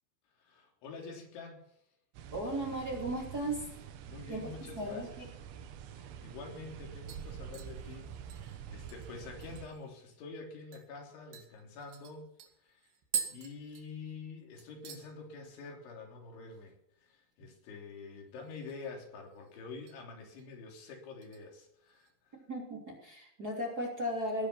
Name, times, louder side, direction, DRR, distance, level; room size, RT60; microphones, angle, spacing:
voice 1, 0.4-1.6 4.1-5.1 5.9-12.3 12.6-12.9 13.3-22.4, left 4 dB, 90° left, 1 dB, 5.8 m, -47 dB
sound 1, 2.1-9.7, right 8 dB, 90° right, 3.7 m, -47 dB
voice 2, 2.3-3.7 4.3-5.3 22.3-24.5, right 1 dB, 25° right, -1 dB, 3.0 m, -36 dB
sound 2, 6.6-6.8 7.1-9.9 10.3-10.4 10.7-10.9 11.3-14.3 14.6-15.1 15.4-15.8 16.1-16.2 18.3-18.9 19.2-20.0 20.4-20.7 21.2-22.1 22.5-22.6, right 8 dB, 70° right, 4.3 m, -44 dB
18.5 x 11.5 x 5.9 m, 0.73 s
omnidirectional pair, 5.2 m